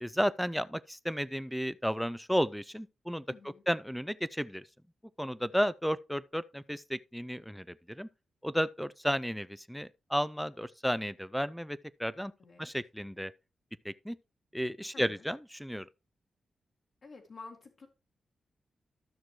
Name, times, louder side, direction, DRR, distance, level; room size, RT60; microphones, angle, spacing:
voice 1, 0.0-3.2 3.7-4.6 5.2-8.1 8.4-12.3 12.6-13.3 13.8-14.2 14.5-15.9, equal, ahead, 0.3 m, -33 dB
voice 2, 3.3-3.6 12.4-12.7 14.9-15.3 17.0-17.9, left 4 dB, 60° left, 1.9 m, -50 dB
13.0 x 6.2 x 3.1 m
cardioid pair, 100°, 0 cm